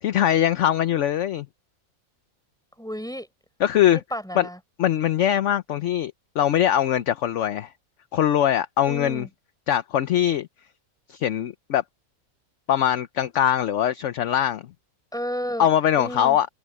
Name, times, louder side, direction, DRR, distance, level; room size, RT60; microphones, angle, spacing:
voice 1, 0.0-1.5 3.6-4.0 4.4-4.5 4.8-7.7 8.1-9.3 9.7-10.5 11.1-11.8 12.7-14.6 15.6-16.5, left 11 dB, 60° left, 0.9 m, -22 dB
voice 2, 2.8-3.3 3.9-4.6 8.9-9.3 15.1-15.7 16.0-16.4, equal, ahead, 6.9 m, -32 dB
open air
omnidirectional pair, 1.6 m